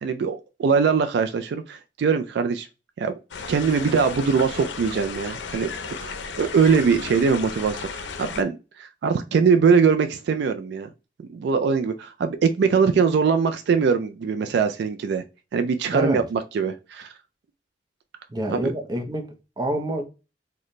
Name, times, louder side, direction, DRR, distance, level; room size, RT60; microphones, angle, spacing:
voice 1, 0.0-2.7 3.0-3.1 3.5-10.9 11.3-15.2 15.5-17.1 18.5-18.7, right 5 dB, 70° right, 0.3 m, -22 dB
sound 1, 3.3-8.4, left 5 dB, 85° left, 0.5 m, -35 dB
voice 2, 15.9-16.2 18.3-20.1, right 1 dB, 25° right, 0.6 m, -27 dB
4.0 x 2.1 x 3.1 m
head